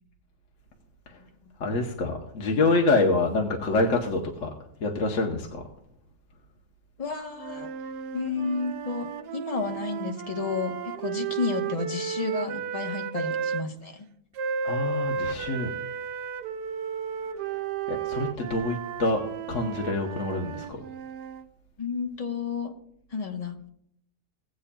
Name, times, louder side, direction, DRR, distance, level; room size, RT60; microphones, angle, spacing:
voice 1, 1.6-4.5 4.8-5.7 14.6-15.7 17.9-20.8, left 2 dB, 55° left, 1 dB, 1.2 m, -26 dB
voice 2, 7.0-7.7 8.1-14.1 21.8-22.7 23.1-23.7, left 5 dB, 30° left, 3 dB, 0.9 m, -31 dB
sound 1, 7.4-13.7 14.4-21.5, right 7 dB, 85° right, 1.2 m, -33 dB
17.5 x 8.4 x 2.3 m, 0.71 s
omnidirectional pair, 1.7 m